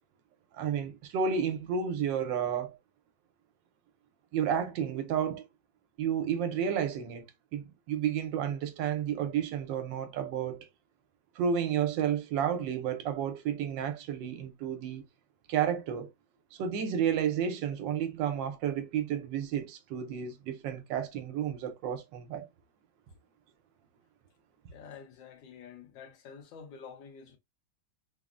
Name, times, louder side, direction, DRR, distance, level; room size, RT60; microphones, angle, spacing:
voice 1, 0.5-2.8 4.3-5.4 6.0-7.3 7.5-10.7 11.4-15.0 15.5-16.1 16.5-22.5, right 8 dB, 75° right, 1.3 m, -31 dB
voice 2, 24.7-27.4, left 6 dB, 75° left, 1.5 m, -48 dB
3.6 x 2.0 x 2.4 m
omnidirectional pair, 2.1 m